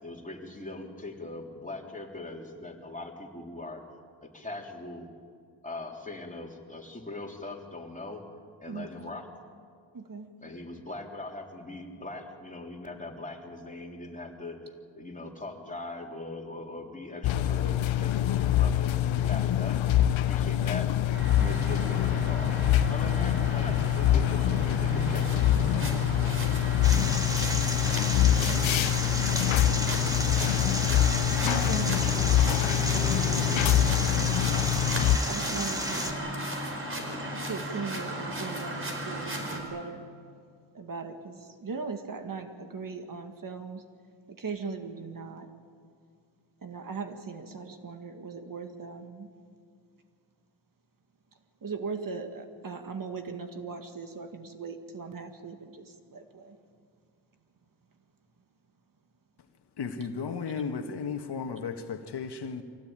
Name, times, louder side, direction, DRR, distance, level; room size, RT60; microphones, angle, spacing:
voice 1, 0.0-3.8 4.2-5.1 5.6-8.3 8.6-9.3 10.4-19.9 20.3-20.9 21.4-25.5, left 2 dB, 15° left, 3.5 m, -40 dB
voice 2, 9.9-10.3 21.4-21.6 26.1-26.3 28.4-28.9 31.4-32.6 33.0-34.4 35.3-36.5 37.3-40.0 40.7-43.8 44.3-45.5 46.6-49.3 51.6-56.6 60.5-60.6, right 4 dB, 45° right, 2.1 m, -39 dB
sound 1, 17.2-35.2, left 12 dB, 80° left, 0.9 m, -25 dB
sound 2, 21.1-39.6, right 1 dB, 25° right, 5.2 m, -35 dB
sound 3, 26.8-36.1, equal, 10° right, 2.6 m, -33 dB
voice 3, 59.8-62.6, left 5 dB, 60° left, 1.6 m, -34 dB
24.5 x 16.5 x 8.9 m
cardioid pair, 80°, 46 cm